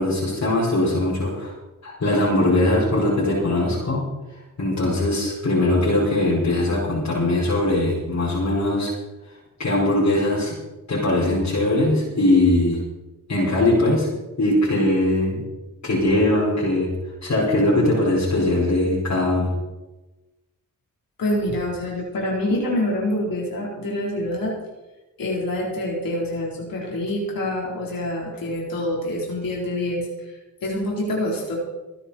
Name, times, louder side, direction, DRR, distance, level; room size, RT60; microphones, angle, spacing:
voice 1, 0.0-1.6 1.8-4.0 4.6-8.9 9.6-10.5 10.9-12.8 13.3-14.1 14.4-15.4 15.8-16.9 17.2-19.5, left 1 dB, 55° left, -7 dB, 5.7 m, -20 dB
voice 2, 21.2-24.5 25.2-30.1 30.6-31.6, left 1 dB, 80° left, -2 dB, 4.1 m, -26 dB
23.5 x 9.9 x 4.4 m, 1.1 s
cardioid pair, 75°, 34 cm